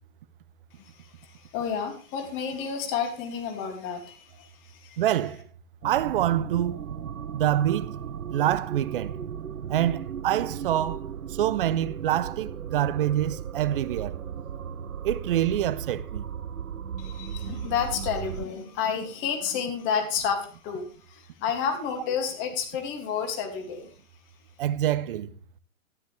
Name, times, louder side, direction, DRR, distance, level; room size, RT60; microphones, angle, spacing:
voice 1, 1.5-4.5 4.8-5.0 17.0-23.9, left 7 dB, 30° left, 2.4 m, -30 dB
voice 2, 5.0-5.4 5.8-6.8 7.3-7.9 8.3-9.2 9.7-11.1 11.4-14.2 15.0-16.3 24.6-25.3, right 12 dB, 40° right, 0.7 m, -26 dB
sound 1, 5.8-18.5, right 8 dB, 90° right, 0.6 m, -36 dB
13.0 x 10.5 x 3.3 m
figure-of-eight pair, 115°, 41 cm